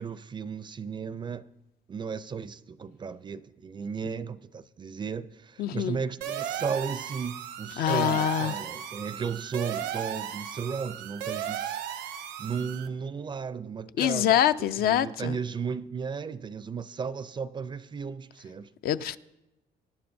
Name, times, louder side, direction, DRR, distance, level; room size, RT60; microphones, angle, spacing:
voice 1, 0.0-1.5 1.9-11.8 12.4-18.7, right 6 dB, 25° right, 0.4 m, -35 dB
voice 2, 5.6-6.0 7.8-8.6 14.0-15.3 18.8-19.2, left 11 dB, 65° left, 0.5 m, -25 dB
sound 1, 6.2-12.9, right 10 dB, 85° right, 0.8 m, -35 dB
23.0 x 11.0 x 2.6 m
cardioid pair, 110°, 17 cm